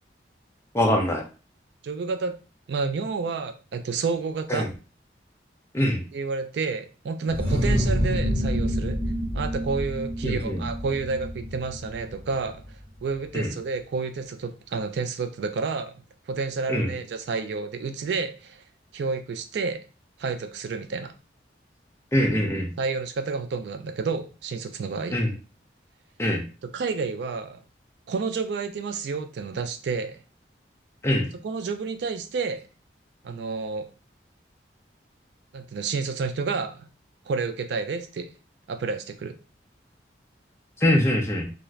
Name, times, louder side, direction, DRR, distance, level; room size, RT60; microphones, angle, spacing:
voice 1, 0.7-1.2 4.5-4.7 5.7-6.0 10.2-10.6 13.3-13.5 16.7-16.9 22.1-22.7 25.1-25.3 26.2-26.4 31.0-31.3 40.8-41.5, left 1 dB, 15° left, 2 dB, 0.5 m, -23 dB
voice 2, 1.8-2.3 2.7-4.7 6.1-9.0 9.3-12.6 13.0-15.9 16.3-18.6 18.9-19.8 20.2-21.1 22.8-25.2 26.7-27.6 28.1-30.2 31.4-32.6 33.2-33.9 35.5-36.9 37.3-38.3 38.7-39.3, right 4 dB, 70° right, 8 dB, 0.3 m, -30 dB
sound 1, 7.3-12.8, equal, 30° right, 0.9 m, -28 dB
2.5 x 2.3 x 3.1 m, 0.34 s
head